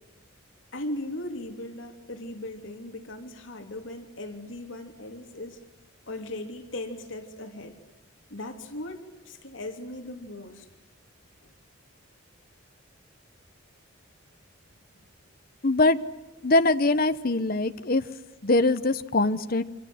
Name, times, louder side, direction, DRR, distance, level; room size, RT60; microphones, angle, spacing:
voice 1, 0.7-5.6 6.1-7.8 8.3-10.7 11.4-11.5, left 1 dB, 65° left, 5 dB, 3.1 m, -38 dB
voice 2, 15.6-16.0 16.4-18.0 18.4-19.6, left 2 dB, 45° left, 10 dB, 1.0 m, -22 dB
28.5 x 25.5 x 7.9 m, 1.1 s
head